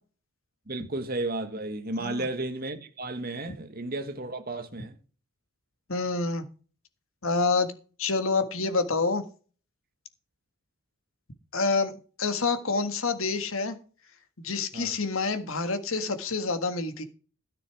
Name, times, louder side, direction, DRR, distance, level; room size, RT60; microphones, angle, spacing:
voice 1, 0.7-5.0 14.7-14.9, right 2 dB, 40° right, 1.6 m, -33 dB
voice 2, 5.9-6.5 7.2-7.7 8.0-9.2 11.5-11.9 12.2-13.8 14.4-17.0, left 4 dB, 65° left, 1.7 m, -27 dB
13.5 x 7.0 x 4.8 m
head